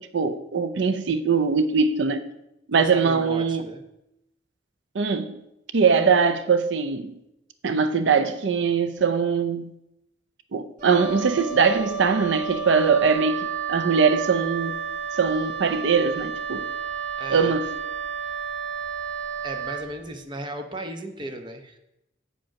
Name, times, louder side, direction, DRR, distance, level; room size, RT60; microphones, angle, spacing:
voice 1, 0.0-2.3 2.7-3.6 4.9-5.4 5.7-7.1 7.6-9.7 10.5-14.8 15.1-16.7 17.3-17.7, right 5 dB, 80° right, 0.5 m, -22 dB
voice 2, 2.9-3.8 17.2-17.5 19.4-21.8, right 1 dB, 25° right, 0.8 m, -36 dB
Wind instrument woodwind instrument, 10.8-19.9, right 7 dB, 45° right, 2.1 m, -31 dB
8.6 x 5.1 x 5.8 m
head